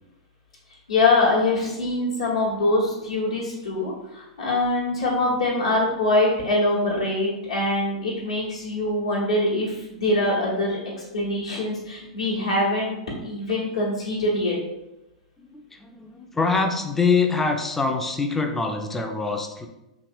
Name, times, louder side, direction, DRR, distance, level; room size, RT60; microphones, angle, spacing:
voice 1, 0.9-14.6, left 2 dB, 70° left, -5 dB, 0.9 m, -24 dB
voice 2, 15.4-19.7, left 4 dB, 10° left, 4 dB, 0.3 m, -24 dB
2.9 x 2.8 x 2.5 m, 0.94 s
figure-of-eight pair, 95°, 3 cm